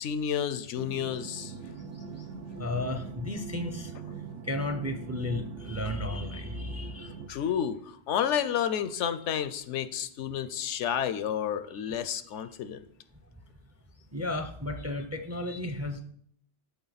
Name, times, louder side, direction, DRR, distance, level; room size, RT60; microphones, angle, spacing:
voice 1, 0.0-1.5 7.3-7.8 8.1-12.8, left 9 dB, 85° left, 13 dB, 0.9 m, -30 dB
sound 1, 0.7-7.3, right 6 dB, 90° right, 1.0 m, -42 dB
voice 2, 2.6-3.9 4.5-7.1 11.8-12.0 14.1-16.0, left 2 dB, 20° right, 6 dB, 0.4 m, -33 dB
12.0 x 4.5 x 4.0 m, 0.64 s
omnidirectional pair, 1.2 m